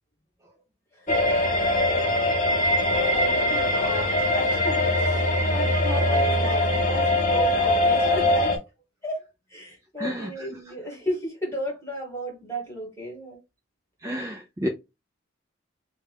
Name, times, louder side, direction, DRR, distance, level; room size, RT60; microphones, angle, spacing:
sound 1, 1.1-8.6, left 1 dB, 40° left, 0.7 m, -22 dB
voice 1, 2.9-8.6 9.0-9.2 9.5-13.4 14.0-14.2, equal, 15° left, 1.4 m, -34 dB
voice 2, 10.0-10.3 14.0-14.7, equal, 15° right, 0.3 m, -30 dB
4.5 x 2.2 x 3.3 m
head